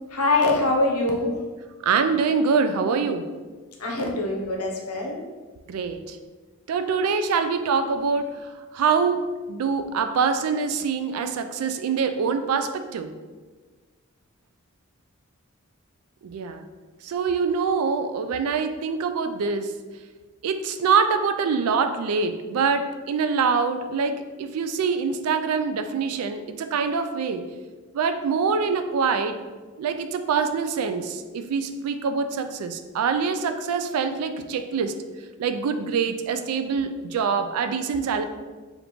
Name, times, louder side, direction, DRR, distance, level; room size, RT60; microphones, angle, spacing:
voice 1, 0.1-1.3 3.8-5.2, left 2 dB, 90° left, 0 dB, 0.7 m, -23 dB
voice 2, 1.8-3.3 5.7-6.2 6.7-8.3 8.7-13.1 16.2-16.7 17.0-19.7 20.4-27.5 27.9-29.4 29.8-34.9 35.4-38.2, right 5 dB, 80° right, 8 dB, 0.3 m, -24 dB
5.1 x 2.5 x 3.0 m, 1.3 s
head